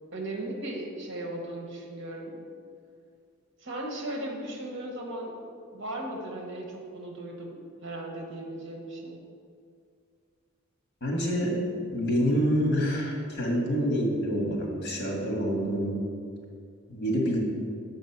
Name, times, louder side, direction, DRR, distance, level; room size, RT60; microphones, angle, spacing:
voice 1, 0.1-2.4 3.6-5.3 5.7-9.2, right 1 dB, 60° right, 1 dB, 1.2 m, -37 dB
voice 2, 11.0-11.6 11.9-16.0 16.9-17.4, equal, 55° left, -1 dB, 1.8 m, -27 dB
7.2 x 5.3 x 5.8 m, 2.3 s
head